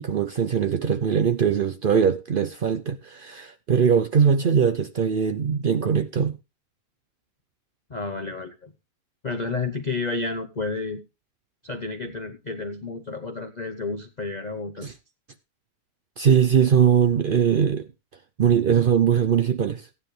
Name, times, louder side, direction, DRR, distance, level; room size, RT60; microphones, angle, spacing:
voice 1, 0.0-6.4 14.8-14.9 16.2-17.9 18.4-19.9, right 7 dB, 80° right, 0.4 m, -21 dB
voice 2, 7.9-8.7 9.2-11.0 11.6-14.9, left 3 dB, 35° left, 0.7 m, -31 dB
15.0 x 9.8 x 3.2 m
omnidirectional pair, 1.8 m